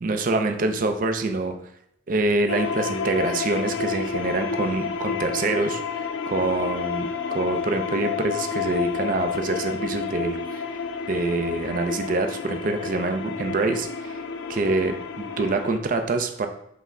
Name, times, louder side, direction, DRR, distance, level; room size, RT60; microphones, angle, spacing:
voice 1, 0.0-1.5 2.1-10.6 11.1-14.2 14.5-16.5, right 2 dB, 45° right, 6 dB, 0.4 m, -26 dB
sound 1, 2.5-15.8, left 5 dB, 75° left, 0.4 m, -30 dB
5.4 x 2.1 x 3.6 m, 0.76 s
head